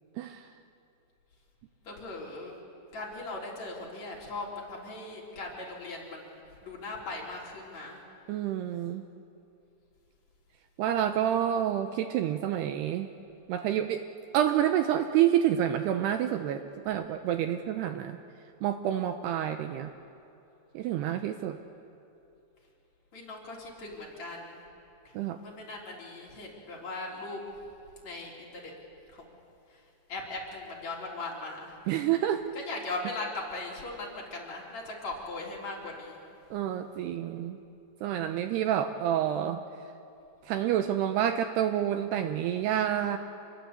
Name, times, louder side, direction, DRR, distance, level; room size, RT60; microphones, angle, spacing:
voice 1, 1.8-2.5 2.9-6.3 6.6-8.0 23.1-24.6 25.4-27.4 28.0-28.7 29.1-29.2 30.1-31.7 32.5-36.2, left 2 dB, 40° left, -3 dB, 4.6 m, -39 dB
voice 2, 8.3-9.0 10.8-13.1 13.5-14.0 14.3-18.2 18.6-19.9 20.7-21.6 25.1-25.4 31.9-32.4 36.5-37.6 38.0-39.6 40.4-43.2, right 10 dB, 75° right, 7 dB, 2.6 m, -28 dB
27.0 x 21.5 x 8.3 m, 2.8 s
omnidirectional pair, 5.2 m